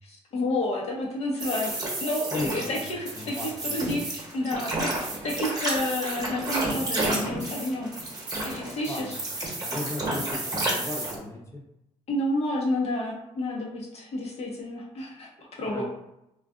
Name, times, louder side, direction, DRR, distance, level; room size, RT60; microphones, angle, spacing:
voice 1, 0.0-4.0 4.3-4.9 5.2-8.0 8.4-9.5 12.1-15.8, left 1 dB, 60° left, -1 dB, 0.9 m, -30 dB
sound 1, 1.4-11.2, right 2 dB, 35° right, 1.1 m, -31 dB
voice 2, 2.3-2.7 3.2-4.0 8.8-9.1 9.5-11.6 15.6-15.8, left 2 dB, 20° left, -2 dB, 0.7 m, -36 dB
2.3 x 2.3 x 3.6 m, 0.85 s
cardioid pair, 120°, 12 cm